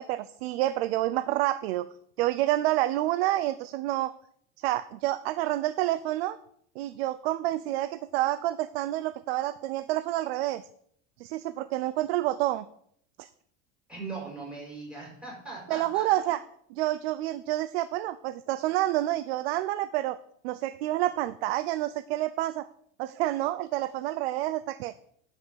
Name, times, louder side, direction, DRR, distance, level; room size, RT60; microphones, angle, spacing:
voice 1, 0.0-1.9 2.2-4.1 4.6-6.4 6.8-10.6 11.2-12.7 13.2-13.3 15.7-16.4 16.7-20.2 20.4-22.6 23.0-24.9, right 15 dB, 85° right, 14 dB, 0.6 m, -28 dB
voice 2, 13.9-16.1, right 3 dB, 5° right, -2 dB, 5.1 m, -39 dB
10.5 x 5.6 x 7.1 m, 0.66 s
cardioid pair, 160°, 30 cm